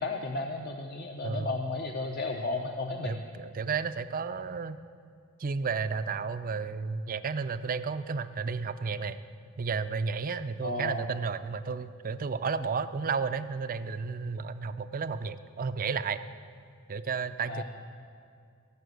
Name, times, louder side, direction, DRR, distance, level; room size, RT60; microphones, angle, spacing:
voice 1, 0.0-3.2 10.6-11.1 17.5-17.6, left 2 dB, 45° left, 3 dB, 0.7 m, -33 dB
voice 2, 1.2-1.5 3.0-4.8 5.4-9.2 9.6-16.2 16.9-17.6, right 5 dB, 40° right, 12 dB, 0.5 m, -32 dB
17.5 x 6.9 x 8.0 m, 2.4 s
head